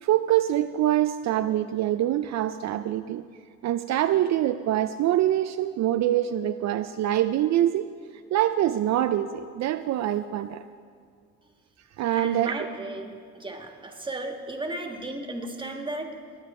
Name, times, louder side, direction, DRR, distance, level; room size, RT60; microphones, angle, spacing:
voice 1, 0.0-3.2 3.6-7.9 8.3-10.6 12.0-12.7, right 12 dB, 65° right, 10 dB, 0.4 m, -24 dB
voice 2, 12.2-16.1, right 2 dB, 15° right, 2 dB, 1.7 m, -35 dB
20.5 x 8.1 x 4.3 m, 2.2 s
cardioid pair, 90°, 30 cm